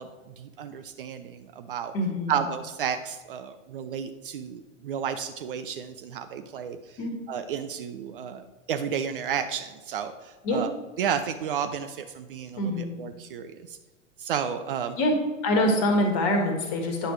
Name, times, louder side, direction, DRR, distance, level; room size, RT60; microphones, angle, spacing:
voice 1, 0.0-1.9 2.3-7.0 7.3-10.7 11.0-13.8 14.2-15.0 15.7-15.8, right 8 dB, 45° right, 9 dB, 0.5 m, -32 dB
voice 2, 1.9-2.3 7.0-7.1 10.4-10.6 12.6-12.9 15.0-15.1 15.4-17.1, left 1 dB, 35° left, 3 dB, 1.6 m, -24 dB
8.8 x 6.3 x 3.1 m, 1.2 s
figure-of-eight pair, 95°, 39 cm